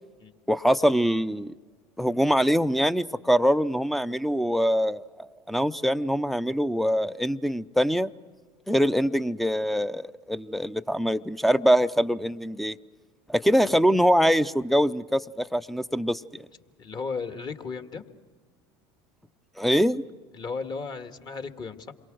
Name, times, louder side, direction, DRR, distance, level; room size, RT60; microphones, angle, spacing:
voice 1, 0.5-1.5 2.0-8.1 8.7-12.8 13.3-16.5 19.6-20.0, equal, ahead, 15 dB, 0.6 m, -23 dB
voice 2, 16.8-18.0 20.3-21.9, left 4 dB, 35° left, 7 dB, 1.8 m, -35 dB
28.0 x 23.0 x 6.3 m, 1.5 s
hypercardioid pair, 85°, 14 cm